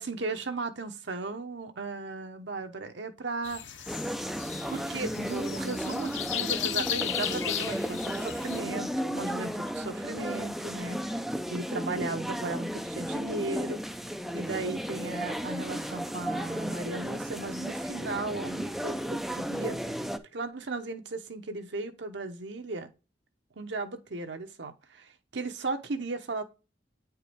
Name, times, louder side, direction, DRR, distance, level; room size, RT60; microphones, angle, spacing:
voice 1, 0.0-4.0 4.7-11.2 11.5-14.1 14.3-19.8 20.3-22.9 23.6-26.4, right 3 dB, 75° right, 0.9 m, -36 dB
sound 1, 3.4-8.6, left 11 dB, 85° left, 0.6 m, -35 dB
sound 2, 3.9-20.2, equal, ahead, 0.5 m, -34 dB
9.3 x 4.6 x 3.4 m
head